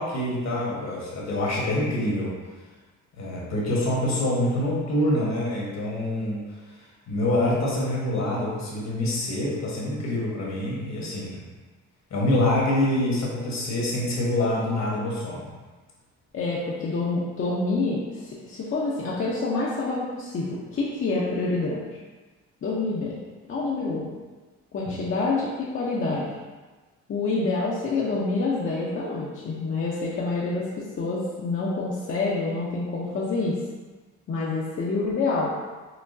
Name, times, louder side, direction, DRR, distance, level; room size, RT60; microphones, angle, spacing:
voice 1, 0.0-2.4 3.2-11.4 12.1-15.5 24.9-25.0, left 1 dB, 60° left, -4 dB, 1.3 m, -26 dB
voice 2, 16.3-22.0 22.6-23.2 23.5-24.1 24.7-26.4 27.1-33.6 34.3-35.5, left 3 dB, 45° left, -6 dB, 0.7 m, -27 dB
5.9 x 2.2 x 2.6 m, 1.3 s
cardioid pair, 90°, 30 cm